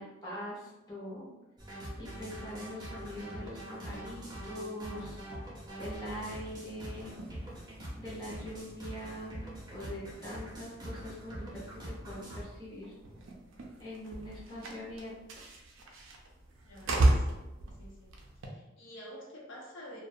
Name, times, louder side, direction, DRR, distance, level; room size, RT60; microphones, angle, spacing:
voice 1, 0.0-1.3 2.0-5.2 5.8-7.1 8.0-9.4 9.7-12.9 13.8-15.4, equal, 20° left, -7 dB, 0.6 m, -43 dB
sound 1, 1.6-12.4, equal, 20° right, 0.6 m, -44 dB
sound 2, 7.0-18.5, right 1 dB, 75° right, 0.4 m, -36 dB
voice 2, 16.6-17.4 17.8-18.1 18.4-20.0, equal, 65° left, -4 dB, 0.7 m, -48 dB
2.4 x 2.1 x 2.6 m, 0.99 s
head